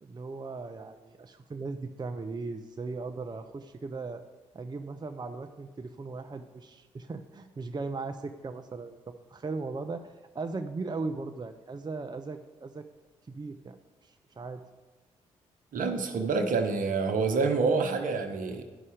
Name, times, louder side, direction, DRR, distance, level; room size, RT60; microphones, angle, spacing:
voice 1, 0.0-4.2 4.5-12.9 13.3-14.6, right 3 dB, 30° right, 7 dB, 0.6 m, -38 dB
voice 2, 15.7-18.6, right 4 dB, 65° right, 6 dB, 1.0 m, -27 dB
11.0 x 5.5 x 4.9 m, 1.3 s
hypercardioid pair, 40°, 15 cm